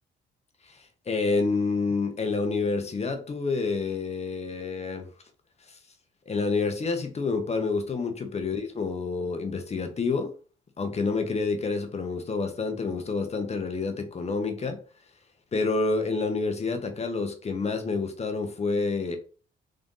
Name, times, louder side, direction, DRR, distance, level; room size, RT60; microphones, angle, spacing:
voice 1, 0.7-5.1 5.7-5.8 6.3-10.3 10.8-14.8 15.5-19.2, left 4 dB, 35° left, 6 dB, 0.8 m, -28 dB
3.7 x 2.6 x 3.7 m, 0.37 s
cardioid pair, 90°, 20 cm